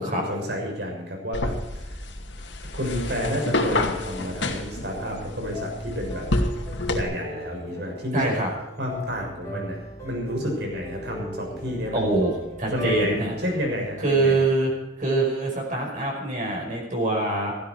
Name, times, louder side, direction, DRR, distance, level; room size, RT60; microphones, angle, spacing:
voice 1, 0.0-1.5 1.8-2.0 2.7-6.2 6.9-8.3 8.8-12.2 12.7-14.4, equal, 65° right, 1 dB, 6.7 m, -30 dB
sound 1, 1.3-7.0, left 2 dB, 80° left, 2.3 m, -29 dB
sound 2, 2.8-14.9, equal, 15° left, 4.4 m, -38 dB
voice 2, 8.1-8.5 11.9-13.3 14.0-14.7 15.0-17.5, right 2 dB, 45° right, -1 dB, 5.1 m, -24 dB
16.5 x 15.5 x 4.8 m, 0.96 s
head